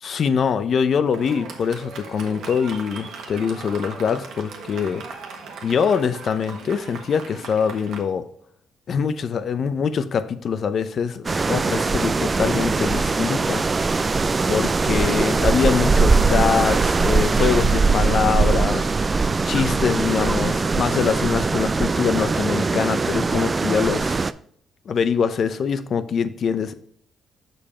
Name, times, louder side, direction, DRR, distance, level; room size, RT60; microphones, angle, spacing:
voice 1, 0.0-5.0 5.6-8.3 8.9-13.6 14.5-19.1 19.4-24.2 24.9-26.7, left 6 dB, 55° left, 12 dB, 0.6 m, -23 dB
Fireworks, 1.1-8.0, right 4 dB, 75° right, 1.4 m, -38 dB
sound 1, 11.2-24.3, right 4 dB, 30° right, 0.3 m, -21 dB
6.8 x 5.3 x 4.4 m, 0.63 s
cardioid pair, 90°, 0 cm